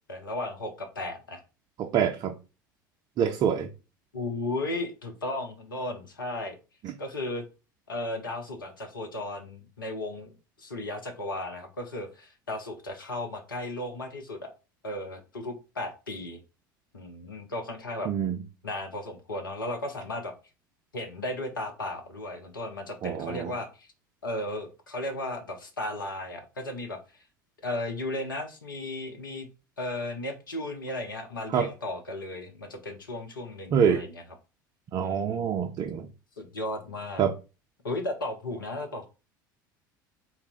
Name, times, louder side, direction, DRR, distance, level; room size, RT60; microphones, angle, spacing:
voice 1, 0.1-1.4 4.1-6.6 7.0-7.4 7.9-10.3 10.6-14.5 14.8-16.4 16.9-18.1 18.6-20.3 20.9-23.9 24.2-27.2 27.6-29.5 29.8-34.2 35.0-35.5 36.4-37.2 37.8-39.1, left 2 dB, 80° left, 0.7 m, -35 dB
voice 2, 1.8-2.3 3.2-3.7 18.1-18.4 23.0-23.5 31.5-31.7 33.7-34.0 34.9-36.1 37.2-37.3, right 8 dB, 35° right, 0.4 m, -25 dB
3.9 x 2.1 x 4.3 m
figure-of-eight pair, 70°, 11 cm